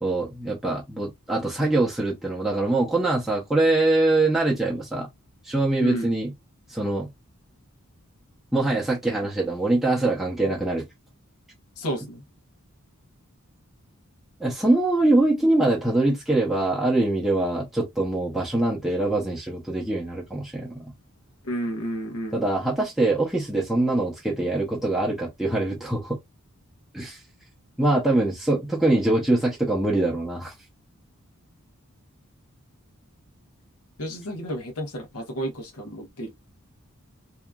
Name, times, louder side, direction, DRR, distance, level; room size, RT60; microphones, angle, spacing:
voice 1, 0.0-5.1 5.4-6.3 6.7-7.1 8.5-10.9 14.4-20.9 22.3-26.2 26.9-27.2 27.8-30.5, right 2 dB, ahead, 0.6 m, -23 dB
voice 2, 11.8-12.2 21.4-22.4 34.0-36.3, equal, 85° left, 0.9 m, -31 dB
2.8 x 2.3 x 2.2 m
head